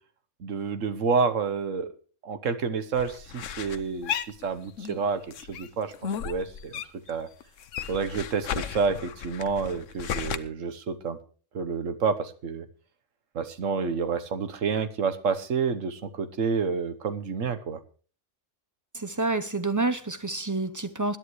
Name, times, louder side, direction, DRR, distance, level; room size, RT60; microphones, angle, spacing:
voice 1, 0.4-1.9 2.2-4.1 4.4-5.2 5.5-5.9 6.2-6.7 7.1-7.3 7.9-11.2 11.5-12.7 13.3-17.8, right 5 dB, 75° right, 1.5 m, -29 dB
sound 1, 2.9-5.0 5.3-7.1 7.4-10.4, left 8 dB, 75° left, 1.1 m, -34 dB
voice 2, 18.9-21.2, right 3 dB, 20° right, 0.6 m, -28 dB
20.5 x 11.0 x 3.2 m
omnidirectional pair, 1.3 m